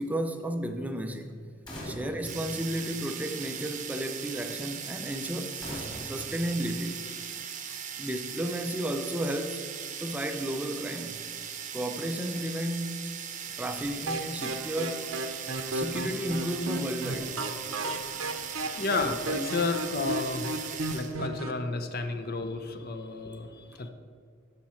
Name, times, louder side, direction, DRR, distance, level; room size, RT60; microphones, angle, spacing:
voice 1, 0.0-1.4 1.8-7.0 8.0-9.6 10.0-11.3 11.7-13.1 13.6-15.1 15.7-18.0 21.4-21.5 22.1-22.2 23.8-23.9, right 1 dB, 5° right, 0.4 m, -33 dB
sound 1, 1.7-3.5 5.6-7.4, equal, 20° left, 2.5 m, -43 dB
sound 2, 2.2-21.2, right 8 dB, 35° right, 0.8 m, -39 dB
sound 3, 14.1-21.6, right 2 dB, 80° right, 0.8 m, -35 dB
voice 2, 18.7-23.9, left 3 dB, 50° left, 0.7 m, -32 dB
13.5 x 5.7 x 4.4 m
head